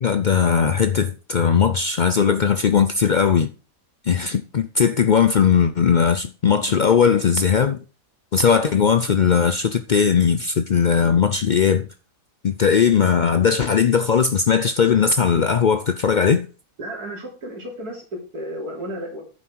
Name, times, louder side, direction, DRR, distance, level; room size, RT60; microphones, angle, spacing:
voice 1, 0.0-3.5 4.1-7.8 8.3-11.9 12.4-16.5, left 6 dB, 85° left, 0.4 m, -18 dB
voice 2, 16.8-19.2, equal, 80° right, 3.7 m, -33 dB
9.7 x 7.5 x 4.6 m
omnidirectional pair, 1.6 m